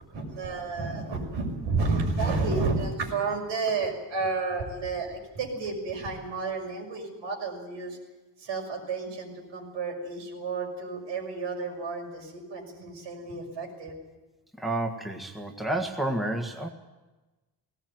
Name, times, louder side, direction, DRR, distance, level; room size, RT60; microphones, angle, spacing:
voice 1, 0.1-8.0 8.4-13.9, right 3 dB, 85° right, 1 dB, 6.5 m, -31 dB
voice 2, 14.6-16.7, right 1 dB, ahead, 2 dB, 1.7 m, -30 dB
19.0 x 18.0 x 9.4 m, 1.1 s
cardioid pair, 155°, 43 cm